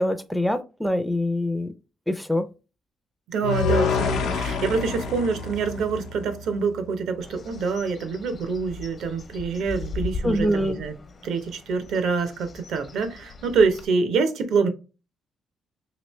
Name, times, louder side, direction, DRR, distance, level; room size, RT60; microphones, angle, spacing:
voice 1, 0.0-1.7 2.1-2.5 10.2-10.8, left 1 dB, 5° left, 0.4 m, -24 dB
voice 2, 3.3-10.9 11.2-14.7, right 4 dB, 75° right, 0.7 m, -26 dB
sound 1, 3.4-6.6, left 4 dB, 85° left, 0.7 m, -27 dB
Bird, 7.2-13.8, left 3 dB, 45° left, 0.7 m, -38 dB
3.0 x 2.9 x 3.1 m
cardioid pair, 90°, 0 cm